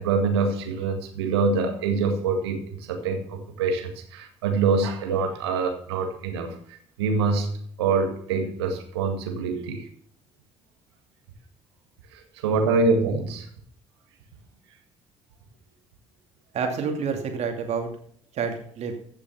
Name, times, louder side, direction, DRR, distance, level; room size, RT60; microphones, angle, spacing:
voice 1, 0.0-7.5 7.8-9.9 12.1-13.5, right 4 dB, 80° right, 5 dB, 1.8 m, -25 dB
voice 2, 16.5-17.9 18.3-18.9, right 5 dB, 55° right, 4 dB, 2.6 m, -28 dB
15.0 x 6.8 x 5.8 m, 0.63 s
figure-of-eight pair, 50°, 14 cm